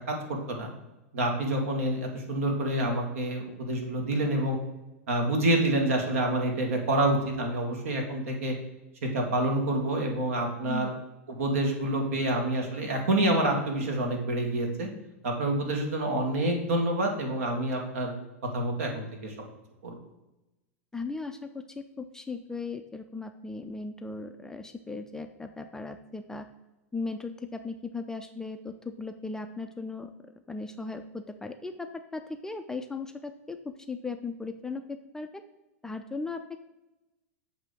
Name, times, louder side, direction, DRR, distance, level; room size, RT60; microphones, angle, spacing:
voice 1, 1.1-4.6 5.1-8.5 9.0-10.9 11.3-14.9 15.2-18.1 18.5-19.3 19.8-20.0, right 1 dB, 70° right, 2 dB, 1.5 m, -27 dB
voice 2, 20.9-26.5 26.9-30.1 30.5-35.4 35.8-36.6, left 3 dB, 5° left, 6 dB, 0.3 m, -37 dB
7.4 x 2.7 x 5.0 m, 1.0 s
hypercardioid pair, 110°, 8 cm